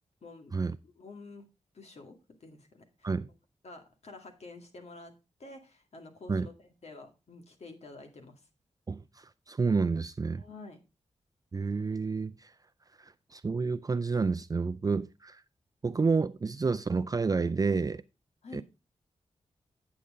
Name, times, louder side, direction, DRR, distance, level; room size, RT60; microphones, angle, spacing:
voice 1, 0.2-0.5 1.0-1.5 1.7-3.1 3.6-5.1 5.4-6.5 6.8-8.4 10.3-10.8 18.4-18.6, left 3 dB, 60° left, 2.1 m, -49 dB
voice 2, 8.9-10.4 11.5-12.5 13.0-15.4 15.8-18.0 18.5-18.6, right 4 dB, 30° right, 0.4 m, -30 dB
9.6 x 7.1 x 3.7 m
cardioid pair, 65°, 12 cm